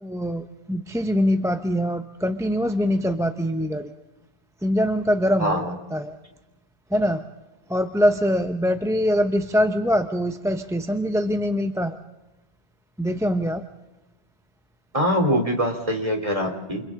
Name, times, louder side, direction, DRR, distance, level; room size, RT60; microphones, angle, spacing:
voice 1, 0.0-3.9 4.6-5.6 5.9-6.2 6.9-7.2 7.7-12.0 13.0-13.7, equal, 5° right, 7 dB, 0.8 m, -23 dB
voice 2, 5.4-5.7 14.9-16.8, equal, 30° right, 3 dB, 3.5 m, -23 dB
29.5 x 28.5 x 3.8 m, 1.1 s
omnidirectional pair, 1.1 m